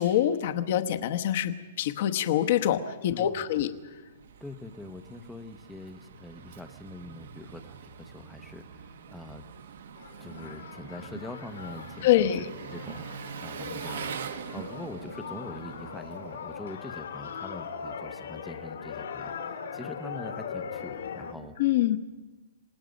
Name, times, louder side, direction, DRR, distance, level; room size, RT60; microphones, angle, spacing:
voice 1, 0.0-3.7 12.0-12.4 21.6-22.0, left 12 dB, 40° left, 9 dB, 1.1 m, -25 dB
voice 2, 3.1-3.6 4.4-9.4 10.2-12.3 12.7-13.1 13.4-21.5, left 2 dB, 5° left, 8 dB, 0.8 m, -43 dB
Engine, 3.7-17.3, right 7 dB, 65° right, 1.3 m, -43 dB
sound 1, 10.0-21.3, left 6 dB, 75° left, 2.7 m, -40 dB
27.5 x 18.5 x 5.3 m, 1.3 s
hypercardioid pair, 175°, 0 cm